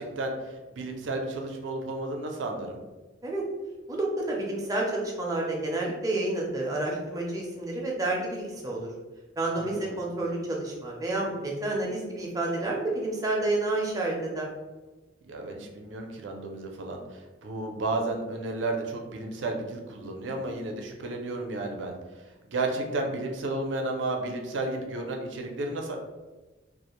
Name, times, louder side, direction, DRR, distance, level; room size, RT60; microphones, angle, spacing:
voice 1, 0.0-2.8 9.6-10.0 15.2-21.9 22.4-26.0, right 2 dB, 80° right, 2 dB, 0.5 m, -32 dB
voice 2, 3.9-8.9 9.4-14.5, right 2 dB, 20° right, -2 dB, 0.4 m, -29 dB
2.3 x 2.1 x 2.9 m, 1.2 s
head